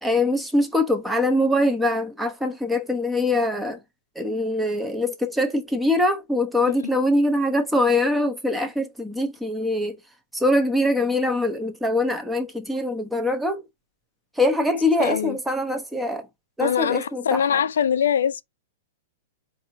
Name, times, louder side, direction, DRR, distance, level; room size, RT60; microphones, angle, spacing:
voice 1, 0.0-3.8 4.2-10.0 10.3-13.6 14.4-16.3 16.6-17.6, left 1 dB, 5° right, 1.0 m, -23 dB
voice 2, 15.0-15.4 16.6-18.4, left 8 dB, 75° left, 0.4 m, -23 dB
4.1 x 2.7 x 3.8 m
hypercardioid pair, 120°, 0 cm